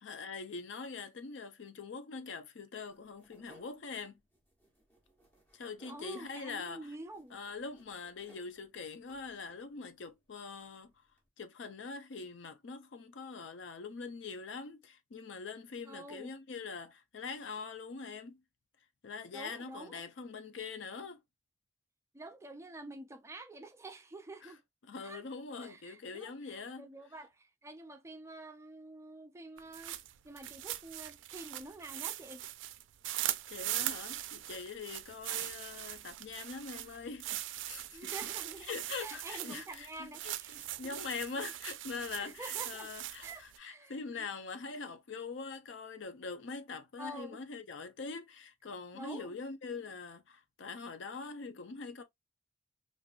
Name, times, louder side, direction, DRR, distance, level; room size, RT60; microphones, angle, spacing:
voice 1, 0.0-4.2 5.5-6.9 7.3-10.9 11.4-18.4 19.0-21.2 24.4-24.5 24.8-26.9 33.5-38.1 38.7-52.0, left 4 dB, 80° left, 0.5 m, -43 dB
sound 1, 2.9-11.3, right 2 dB, 10° left, 1.1 m, -66 dB
voice 2, 5.9-7.4 15.8-16.3 19.3-20.0 22.1-24.6 25.0-25.2 25.6-30.0 30.2-32.4 37.9-41.5 42.2-42.9 43.2-43.9 47.0-47.4 48.9-49.3, right 2 dB, 15° right, 0.4 m, -48 dB
sound 2, 29.6-43.6, right 14 dB, 85° right, 0.3 m, -40 dB
3.7 x 2.5 x 2.3 m
head